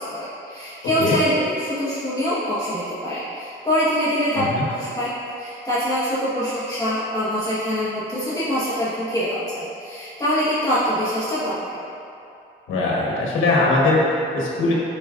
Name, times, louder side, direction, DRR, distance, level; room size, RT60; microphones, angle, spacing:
voice 1, 0.1-11.8, equal, 20° left, -11 dB, 1.3 m, -24 dB
voice 2, 12.7-14.7, left 2 dB, 80° left, -4 dB, 1.2 m, -20 dB
9.9 x 4.0 x 2.4 m, 2.7 s
cardioid pair, 90°, 20 cm